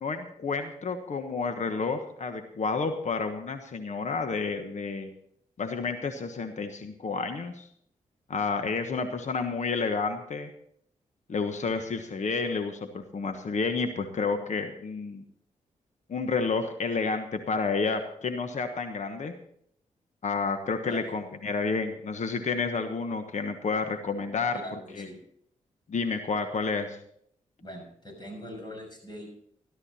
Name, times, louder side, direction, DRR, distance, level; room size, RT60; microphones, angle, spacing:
voice 1, 0.0-5.1 5.6-7.7 8.3-10.5 11.3-15.2 16.1-19.3 20.2-24.6 25.0-25.1 25.9-27.0, left 4 dB, 55° left, 7 dB, 1.3 m, -30 dB
voice 2, 24.5-25.2 27.6-29.3, equal, 30° left, 2 dB, 6.4 m, -42 dB
13.0 x 13.0 x 4.3 m, 0.67 s
cardioid pair, 60°, 14 cm